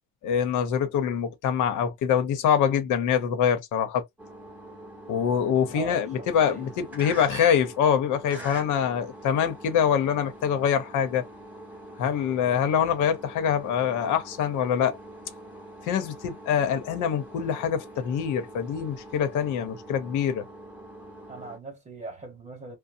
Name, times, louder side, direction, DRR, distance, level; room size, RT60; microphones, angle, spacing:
voice 1, 0.2-4.0 5.1-11.2 12.0-15.0 15.8-20.5, left 8 dB, 90° left, 0.9 m, -25 dB
sound 1, 4.2-21.6, right 1 dB, 5° right, 0.8 m, -44 dB
voice 2, 5.7-6.7 21.3-22.8, right 3 dB, 25° right, 1.0 m, -40 dB
2.7 x 2.1 x 2.5 m
cardioid pair, 170°, 29 cm